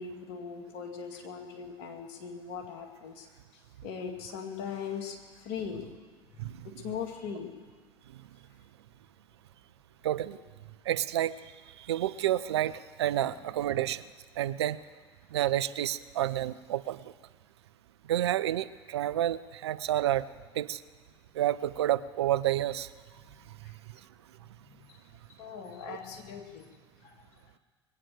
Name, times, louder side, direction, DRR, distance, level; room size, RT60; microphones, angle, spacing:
voice 1, 0.0-3.3 3.8-5.2 5.4-5.9 6.6-7.5 13.2-13.4 25.4-26.7 27.0-27.2, left 6 dB, 60° left, 3 dB, 2.2 m, -39 dB
voice 2, 10.0-10.4 10.9-11.4 11.9-14.0 14.4-14.8 15.3-17.0 18.1-20.3 20.6-20.8 21.4-22.9 25.9-26.0, right 12 dB, 75° right, 15 dB, 0.5 m, -29 dB
21.5 x 8.9 x 6.9 m, 1.5 s
figure-of-eight pair, 65°, 14 cm